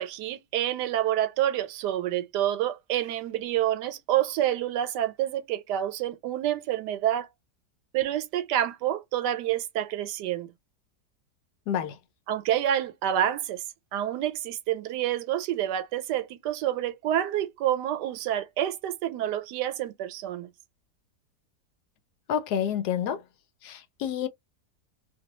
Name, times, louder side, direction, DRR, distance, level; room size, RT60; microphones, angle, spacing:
voice 1, 0.0-7.3 7.9-10.5 12.3-13.6 13.9-20.5, right 11 dB, 85° right, 1.2 m, -28 dB
voice 2, 11.7-12.0 22.3-23.2 23.6-24.3, left 9 dB, 75° left, 1.1 m, -28 dB
2.6 x 2.2 x 2.9 m
omnidirectional pair, 1.8 m